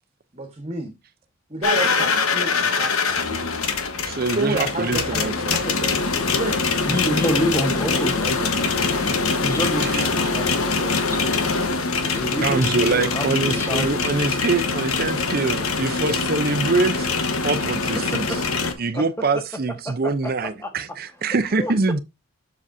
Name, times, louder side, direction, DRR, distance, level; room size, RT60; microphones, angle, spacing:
voice 1, 0.3-0.9 1.5-3.4 4.3-6.6, right 2 dB, 30° right, 1.3 m, -30 dB
sound 1, 1.6-18.7, left 4 dB, 90° left, 1.2 m, -23 dB
voice 2, 4.0-5.6 9.8-10.1 12.4-17.1 17.4-18.3 18.8-22.0, right 3 dB, 45° right, 0.6 m, -24 dB
voice 3, 6.8-11.5 12.1-14.1 17.9-18.4 18.9-19.1 19.8-20.7 21.1-21.7, equal, 10° left, 1.4 m, -29 dB
7.4 x 6.8 x 2.7 m
head